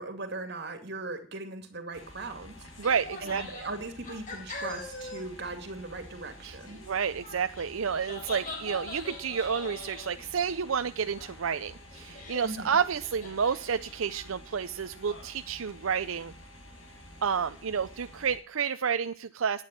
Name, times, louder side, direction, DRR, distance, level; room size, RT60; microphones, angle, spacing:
voice 1, 0.0-2.7 3.2-6.8 12.4-12.8, right 2 dB, 55° right, 7 dB, 2.4 m, -39 dB
sound 1, 1.9-18.4, left 1 dB, 80° left, 4.8 m, -50 dB
sound 2, 2.7-5.3 5.6-5.7 6.6-10.8 11.2-11.6 11.9-12.6 12.8-14.3, left 2 dB, 40° left, 3.9 m, -43 dB
voice 2, 2.8-3.6 6.4-6.6 6.9-16.3 17.2-19.6, right 6 dB, 85° right, 10 dB, 0.6 m, -30 dB
11.5 x 9.1 x 8.9 m, 0.43 s
head